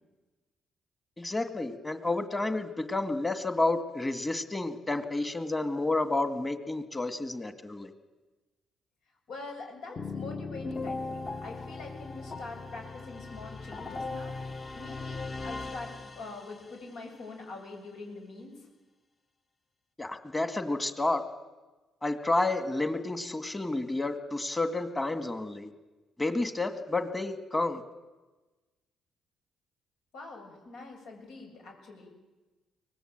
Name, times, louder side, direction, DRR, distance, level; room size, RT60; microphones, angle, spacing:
voice 1, 1.2-7.9 20.0-21.2 22.0-25.7 26.2-27.8, left 2 dB, 20° left, 9 dB, 2.2 m, -30 dB
voice 2, 9.3-14.3 14.7-18.5 30.1-32.1, left 3 dB, 80° left, 1 dB, 7.4 m, -44 dB
sound 1, 9.9-16.7, left 3 dB, 35° left, 1.3 m, -38 dB
24.0 x 19.0 x 9.1 m, 1.2 s
cardioid pair, 90°, 0 cm